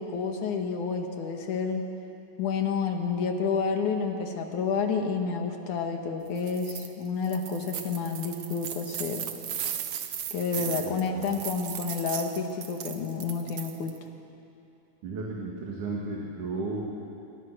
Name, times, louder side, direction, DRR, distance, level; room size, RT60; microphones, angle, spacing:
voice 1, 0.0-1.9 2.4-9.3 10.3-13.9, left 5 dB, 75° left, 4 dB, 3.2 m, -30 dB
sound 1, 6.4-6.9 7.2-14.0, right 9 dB, 60° right, 2.0 m, -36 dB
voice 2, 10.6-11.3 15.0-16.9, right 3 dB, 75° right, -3 dB, 3.8 m, -34 dB
27.0 x 23.5 x 6.3 m, 2.7 s
omnidirectional pair, 3.6 m